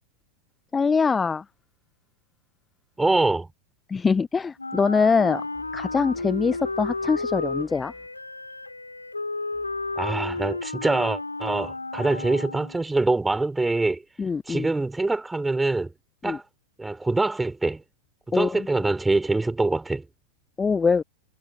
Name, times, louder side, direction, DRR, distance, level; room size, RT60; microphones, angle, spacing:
voice 1, 0.7-1.4 3.9-5.4 5.7-7.9 14.2-14.7 16.2-16.4 18.3-18.7 20.6-21.0, left 5 dB, 15° left, 0.4 m, -23 dB
voice 2, 3.0-3.5 10.0-14.0 14.5-15.9 16.2-16.4 16.8-17.8 18.3-20.1, right 2 dB, 10° right, 5.6 m, -24 dB
Wind instrument woodwind instrument, 4.6-12.9, left 3 dB, 80° left, 5.2 m, -32 dB
figure-of-eight pair, 90°, 0 cm